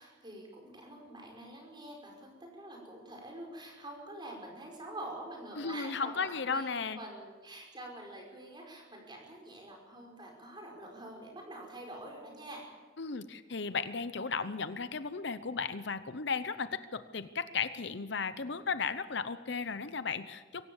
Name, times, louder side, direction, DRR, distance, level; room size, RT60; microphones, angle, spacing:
voice 1, 0.0-12.7, right 1 dB, 25° right, 1 dB, 5.5 m, -46 dB
voice 2, 5.6-7.0 13.0-20.6, left 5 dB, 60° left, 12 dB, 0.8 m, -35 dB
23.5 x 17.0 x 7.2 m, 1.3 s
head